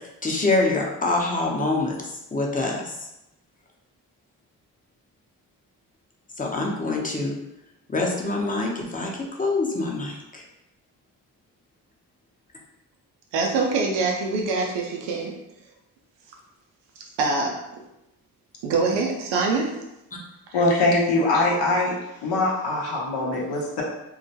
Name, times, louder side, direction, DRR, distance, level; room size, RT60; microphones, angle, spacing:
voice 1, 0.2-1.9 2.3-2.9 6.4-7.3 7.9-10.4 20.1-20.2, left 2 dB, 20° left, -1 dB, 0.7 m, -25 dB
voice 2, 13.3-15.3 17.2-17.6 18.6-19.7, right 3 dB, 85° right, 1 dB, 0.5 m, -24 dB
voice 3, 20.5-21.9 22.2-23.8, left 2 dB, 70° left, -3 dB, 0.7 m, -22 dB
2.3 x 2.1 x 2.7 m, 0.90 s
hypercardioid pair, 40°, 42 cm